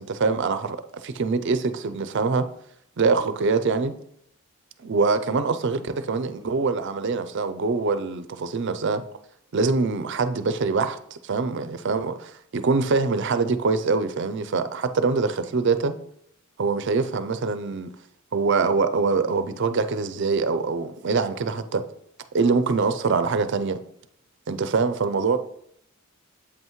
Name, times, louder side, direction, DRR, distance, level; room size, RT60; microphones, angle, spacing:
voice 1, 0.0-2.5 3.0-3.9 4.8-9.0 9.5-15.9 16.6-17.9 18.3-21.8 22.3-23.8 24.5-25.4, right 4 dB, 55° right, 0.5 m, -24 dB
8.0 x 5.5 x 3.1 m
head